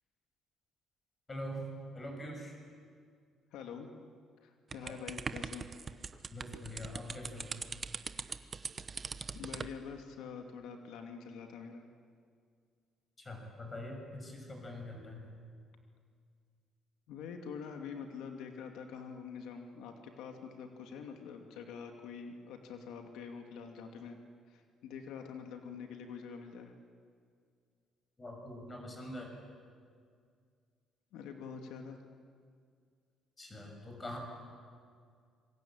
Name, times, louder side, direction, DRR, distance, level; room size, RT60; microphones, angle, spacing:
voice 1, 1.3-2.5 4.8-5.0 6.3-7.5 13.2-15.2 28.2-29.3 33.4-34.2, left 1 dB, 20° left, 2 dB, 6.4 m, -44 dB
voice 2, 3.5-3.9 4.4-5.7 9.3-11.9 17.1-24.2 24.5-26.7 31.1-32.0, left 6 dB, 85° left, 4 dB, 2.5 m, -45 dB
sound 1, 4.7-9.7, right 5 dB, 25° right, 1.0 m, -41 dB
27.0 x 24.5 x 8.9 m, 2.1 s
cardioid pair, 160°, 0 cm